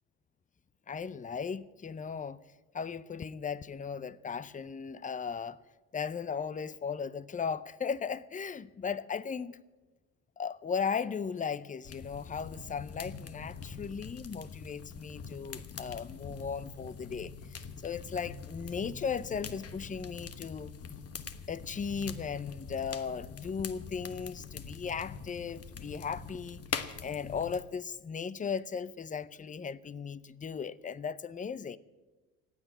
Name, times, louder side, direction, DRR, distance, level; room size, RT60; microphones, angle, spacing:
voice 1, 0.9-2.4 2.7-5.6 5.9-9.6 10.4-20.7 21.5-31.8, left 6 dB, 20° left, 0.6 m, -37 dB
sound 1, 11.8-27.6, left 6 dB, 35° left, 1.2 m, -43 dB
15.5 x 8.9 x 9.7 m
supercardioid pair, 70°, 39 cm